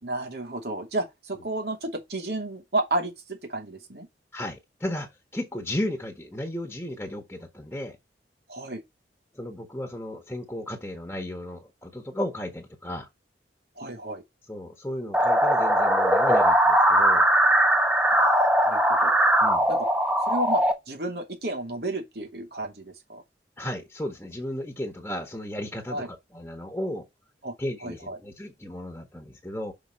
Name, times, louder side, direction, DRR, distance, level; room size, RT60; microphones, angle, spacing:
voice 1, 0.0-4.1 8.5-8.8 13.8-14.2 18.1-19.2 19.7-19.9 20.3-23.2 25.9-26.1 27.4-27.5 27.8-28.2, right 2 dB, 65° right, 2.9 m, -32 dB
voice 2, 4.3-8.0 9.3-13.1 14.5-17.3 19.4-19.7 23.6-27.0 27.6-29.7, left 1 dB, 10° left, 1.4 m, -34 dB
sound 1, 15.1-20.7, right 1 dB, 10° right, 1.2 m, -20 dB
5.7 x 5.5 x 4.4 m
head